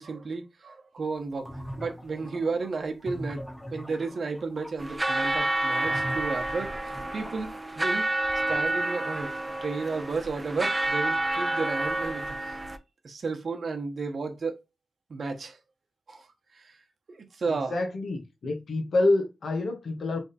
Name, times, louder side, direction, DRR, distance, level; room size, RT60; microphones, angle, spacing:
voice 1, 0.0-1.5 1.8-3.4 3.7-6.7 7.1-9.3 9.6-12.6 13.0-14.6 15.1-15.6 16.1-16.3 16.5-16.8 17.1-17.7, right 4 dB, 60° right, 1.0 m, -33 dB
sound 1, 1.2-4.7 5.8-7.5, equal, 10° left, 1.3 m, -41 dB
sound 2, 4.8-12.8, right 2 dB, 25° right, 0.6 m, -29 dB
voice 2, 17.7-20.2, left 2 dB, 75° left, 1.4 m, -27 dB
3.6 x 3.5 x 4.2 m
cardioid pair, 70°, 0 cm